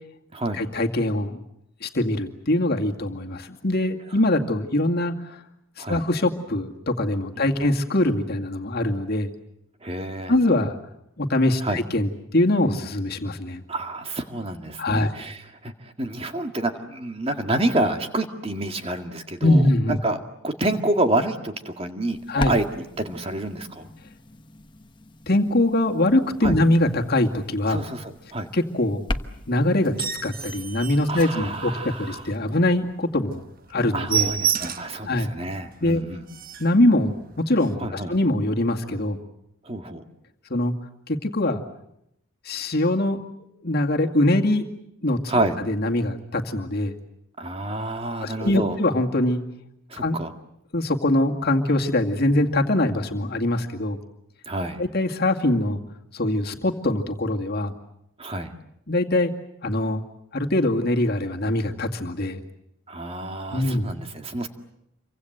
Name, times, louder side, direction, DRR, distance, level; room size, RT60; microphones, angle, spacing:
voice 1, 0.5-1.4 1.8-5.4 5.8-9.3 10.3-10.8 11.2-13.6 14.8-15.1 19.4-20.0 22.3-22.5 25.3-27.8 28.5-29.0 29.5-29.9 30.2-31.7 32.0-33.4 33.7-34.3 35.1-35.3 35.8-36.0 36.6-39.2 40.5-40.7 41.1-41.6 42.4-43.2 43.6-44.7 45.0-45.2 45.7-47.0 48.2-49.4 50.0-50.2 50.7-54.0 54.8-55.8 56.1-57.8 58.9-59.3 59.6-60.0 60.3-62.4 63.5-63.9, left 1 dB, 50° left, 3 dB, 2.2 m, -23 dB
voice 2, 9.8-10.3 11.6-11.8 13.7-22.2 22.5-23.9 26.4-26.5 27.7-28.5 31.1-32.2 33.9-36.2 37.8-38.1 39.6-40.0 45.3-45.6 47.4-48.8 49.9-50.3 54.5-54.8 58.2-58.5 62.9-64.5, right 1 dB, 25° right, 5 dB, 2.1 m, -28 dB
sound 1, 22.1-32.3, left 1 dB, 20° left, 1.1 m, -38 dB
sound 2, 29.8-32.0 32.4-32.5 32.9-33.0 33.3-33.4 33.7-35.0 35.5-35.6 36.0-36.1 36.3-36.8 37.5-37.7, right 9 dB, 40° right, 1.3 m, -29 dB
28.0 x 24.5 x 8.0 m, 0.80 s
head